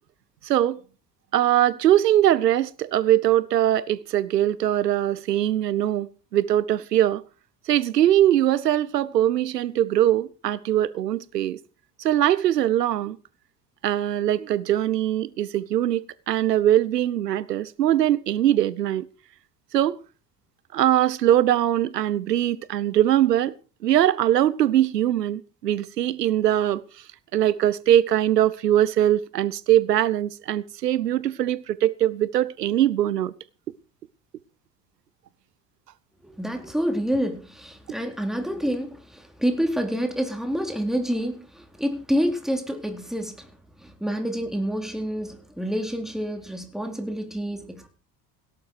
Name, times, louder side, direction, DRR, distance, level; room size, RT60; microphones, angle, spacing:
voice 1, 0.4-0.8 1.3-7.2 7.7-11.6 12.0-13.2 13.8-19.1 19.7-20.0 20.7-23.5 23.8-26.8 27.3-33.3, right 12 dB, 85° right, 1.0 m, -21 dB
voice 2, 36.2-43.5 43.8-47.9, equal, ahead, 4.1 m, -28 dB
17.0 x 12.0 x 4.7 m
hypercardioid pair, 65°, 47 cm